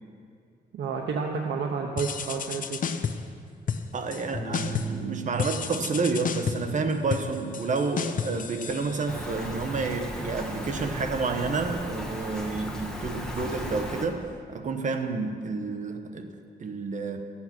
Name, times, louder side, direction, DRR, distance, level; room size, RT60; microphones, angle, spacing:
voice 1, 0.7-2.8, right 5 dB, 80° right, 1 dB, 0.9 m, -30 dB
sound 1, 2.0-3.3 3.7-4.2 4.5-5.0 5.4-9.4, left 6 dB, 50° left, 0.6 m, -32 dB
voice 2, 3.9-17.2, right 4 dB, 45° right, 6 dB, 1.1 m, -30 dB
sound 2, 4.3-12.7, right 4 dB, 25° left, 1.3 m, -43 dB
Rain, 9.1-14.1, equal, 5° left, 1.4 m, -36 dB
13.0 x 8.7 x 6.0 m, 2.4 s
cardioid pair, 125°, 18 cm